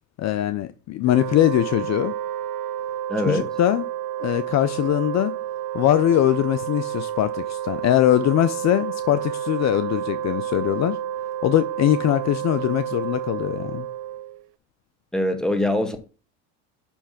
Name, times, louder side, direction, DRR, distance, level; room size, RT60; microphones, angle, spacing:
voice 1, 0.2-2.1 3.2-3.8 4.2-5.3 5.7-11.0 11.4-13.9, left 13 dB, 45° left, 0.6 m, -21 dB
Wind instrument woodwind instrument, 1.0-14.4, right 11 dB, 55° right, 0.8 m, -30 dB
voice 2, 3.1-3.5 15.1-16.0, left 1 dB, ahead, 1.5 m, -23 dB
10.0 x 3.3 x 5.9 m
supercardioid pair, 95°, 40 cm